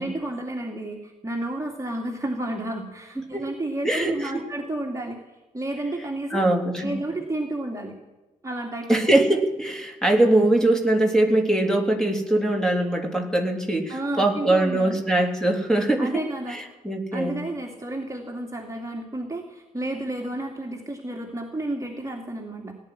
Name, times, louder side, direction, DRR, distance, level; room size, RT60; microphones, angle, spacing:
voice 1, 0.0-5.2 5.5-6.5 6.8-8.0 8.4-9.0 13.9-15.0 16.0-16.6 17.1-22.7, right 1 dB, 15° right, 0 dB, 2.5 m, -31 dB
voice 2, 3.8-4.4 6.3-6.9 8.9-16.2 16.5-17.5, right 1 dB, 5° left, 2 dB, 3.3 m, -22 dB
17.0 x 10.0 x 7.7 m, 1.1 s
figure-of-eight pair, 40°, 19 cm